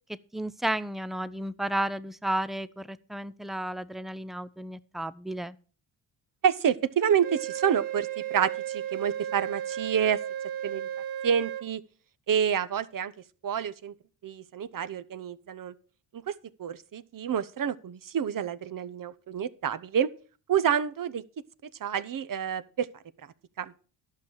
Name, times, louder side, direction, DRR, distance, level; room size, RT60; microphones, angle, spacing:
voice 1, 0.3-5.6, right 1 dB, ahead, 0.5 m, -32 dB
voice 2, 6.4-10.2 10.6-10.9 11.2-11.8 12.3-13.1 13.4-13.9 14.2-15.7 16.3-20.1 20.5-21.2 21.8-22.9 23.6-23.7, right 8 dB, 45° right, 0.8 m, -28 dB
Wind instrument woodwind instrument, 7.2-11.7, right 11 dB, 75° right, 1.0 m, -34 dB
11.5 x 5.6 x 6.5 m
supercardioid pair, 65°, 47 cm